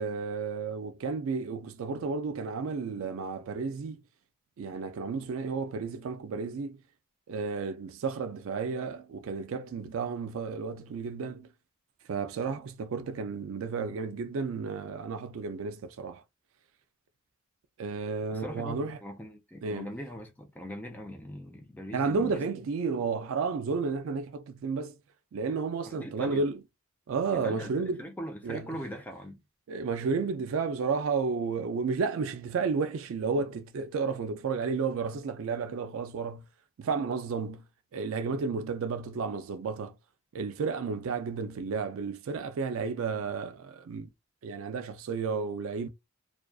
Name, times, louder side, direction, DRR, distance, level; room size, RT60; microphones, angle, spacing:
voice 1, 0.0-4.0 4.6-6.8 7.3-11.5 12.0-16.2 17.8-19.0 19.6-19.9 21.9-25.0 25.3-26.6 27.1-28.0 28.4-28.8 29.7-36.4 36.8-37.6 37.9-40.0 40.3-44.1 44.4-45.9, right 5 dB, 70° right, 0.3 m, -32 dB
voice 2, 18.3-22.4 25.9-26.4 27.3-29.4, equal, 10° left, 0.5 m, -41 dB
2.4 x 2.3 x 2.3 m
head